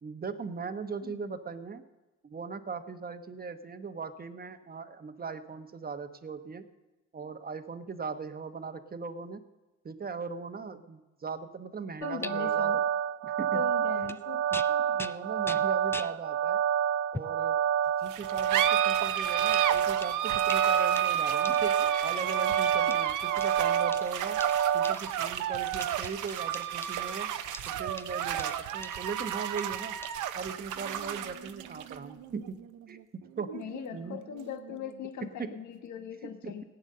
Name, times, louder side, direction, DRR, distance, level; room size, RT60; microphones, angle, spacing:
voice 1, 0.0-1.8 2.2-6.7 7.1-9.4 9.8-12.7 13.2-13.7 14.5-16.6 17.1-17.6 18.0-24.4 24.7-27.3 27.8-30.0 30.3-32.6 32.9-33.0 33.4-33.5 33.9-34.2 35.4-35.6 36.2-36.6, right 5 dB, 30° right, 10 dB, 1.0 m, -39 dB
voice 2, 12.0-12.8 13.5-15.0 22.9-23.0 33.5-36.6, left 8 dB, 75° left, 7 dB, 1.3 m, -40 dB
sound 1, 12.0-24.9, right 9 dB, 55° right, 0.4 m, -28 dB
sound 2, 12.2-12.3 14.0-14.2 14.5-16.2 17.1-17.4 18.2-18.4 19.5-21.9 22.9-25.3 25.8-27.2 27.5-29.2 29.6-30.1, left 2 dB, 10° left, 0.4 m, -44 dB
sound 3, 18.1-35.1, right 10 dB, 80° right, 0.9 m, -32 dB
16.5 x 9.0 x 6.6 m, 1.1 s
cardioid pair, 90°, 30 cm